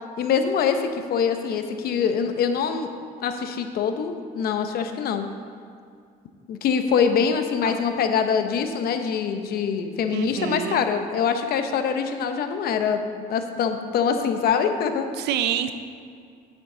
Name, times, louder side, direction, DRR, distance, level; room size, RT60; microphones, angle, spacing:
voice 1, 0.2-2.9 3.2-5.3 6.5-13.0 13.3-15.1, left 6 dB, 65° left, 7 dB, 0.9 m, -24 dB
voice 2, 10.1-10.9 15.2-15.7, right 10 dB, 80° right, 10 dB, 0.6 m, -27 dB
9.9 x 8.2 x 3.9 m, 2.3 s
cardioid pair, 110°, 17 cm